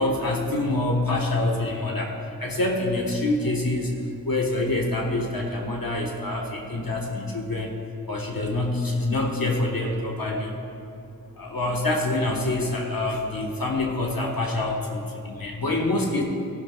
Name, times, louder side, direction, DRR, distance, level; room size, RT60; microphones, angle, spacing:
voice 1, 0.0-4.0 4.2-7.7 8.1-10.6 11.4-15.0 15.2-16.2, left 2 dB, 65° left, -1 dB, 1.3 m, -26 dB
15.0 x 11.0 x 2.3 m, 2.8 s
wide cardioid pair, 45°, 37 cm